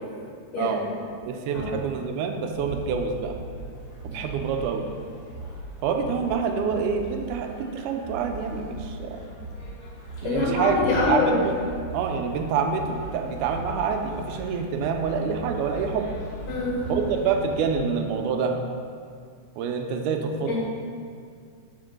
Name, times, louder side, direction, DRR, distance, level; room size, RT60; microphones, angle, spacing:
voice 1, 0.5-1.1 1.5-1.7 10.2-11.4 16.5-16.9 20.5-20.6, left 3 dB, 85° left, -5 dB, 3.1 m, -25 dB
voice 2, 1.2-3.4 4.0-4.9 5.8-9.2 10.2-10.7 11.1-11.5 11.9-16.1 16.9-18.6 19.6-20.5, right 6 dB, 85° right, 4 dB, 2.1 m, -27 dB
sound 1, 2.5-17.9, right 2 dB, 65° left, 2.4 m, -39 dB
5.7 x 4.4 x 6.3 m, 2.1 s
omnidirectional pair, 3.6 m